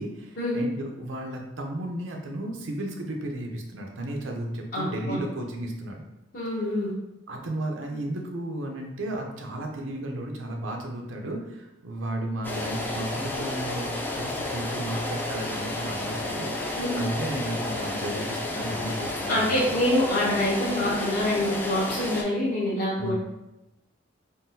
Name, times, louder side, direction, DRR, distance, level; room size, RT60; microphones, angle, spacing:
voice 1, 0.0-6.0 7.3-19.7 22.9-23.1, right 1 dB, 75° right, 1 dB, 0.6 m, -34 dB
voice 2, 4.7-5.2 6.3-6.9 16.8-16.9 19.3-23.1, left 1 dB, 50° left, -8 dB, 0.6 m, -26 dB
sound 1, 12.4-22.2, left 2 dB, 10° left, 0.3 m, -31 dB
3.7 x 2.2 x 2.6 m, 0.95 s
head